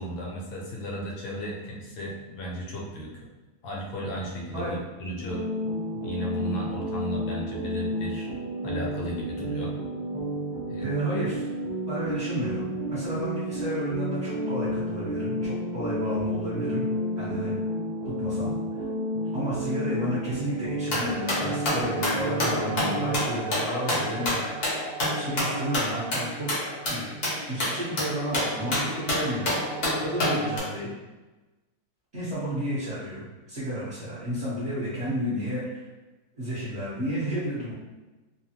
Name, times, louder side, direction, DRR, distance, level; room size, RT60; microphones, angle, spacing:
voice 1, 0.0-3.3 3.6-5.4 5.9-8.3 8.6-9.7 10.7-11.0, equal, 80° left, -2 dB, 1.4 m, -35 dB
sound 1, 5.2-23.3, equal, 15° left, 0.4 m, -31 dB
voice 2, 10.8-11.5 11.9-16.8 17.2-17.5 18.2-18.5 19.3-24.4 25.1-26.6 26.9-29.5 30.0-30.9 32.1-35.9 36.4-37.7, equal, 50° right, -10 dB, 0.9 m, -32 dB
sound 2, 20.9-30.6, left 1 dB, 50° left, 0.7 m, -28 dB
3.2 x 2.1 x 2.8 m, 1.2 s
omnidirectional pair, 2.1 m